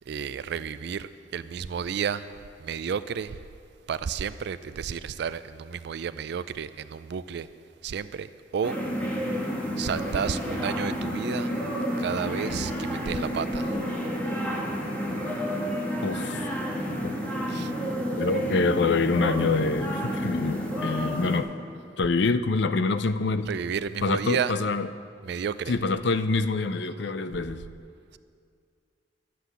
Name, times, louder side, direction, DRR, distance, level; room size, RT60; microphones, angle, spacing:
voice 1, 0.0-2.3 2.6-3.4 3.9-7.5 7.8-8.8 9.8-11.5 12.0-13.8 17.5-17.7 23.5-24.5 25.2-25.7, right 7 dB, 65° right, 14 dB, 0.3 m, -31 dB
sound 1, 8.6-21.4, equal, 10° left, 1.5 m, -30 dB
voice 2, 16.0-16.5 17.0-17.2 18.1-21.5 22.0-23.5 24.0-24.9 25.7-27.6, left 3 dB, 65° left, 12 dB, 0.5 m, -26 dB
12.0 x 7.7 x 8.1 m, 2.3 s
head